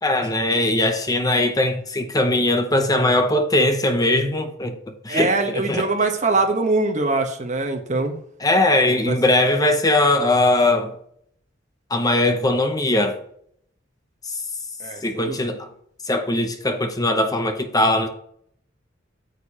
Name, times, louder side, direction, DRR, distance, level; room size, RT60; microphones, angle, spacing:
voice 1, 0.0-5.9 8.4-10.9 11.9-13.2 14.2-14.4 15.0-15.7 16.1-18.1, left 1 dB, 20° left, 0.8 m, -20 dB
voice 2, 5.1-8.2 8.9-9.2 14.8-15.4, right 3 dB, 40° right, 1.1 m, -23 dB
9.1 x 6.6 x 2.9 m
head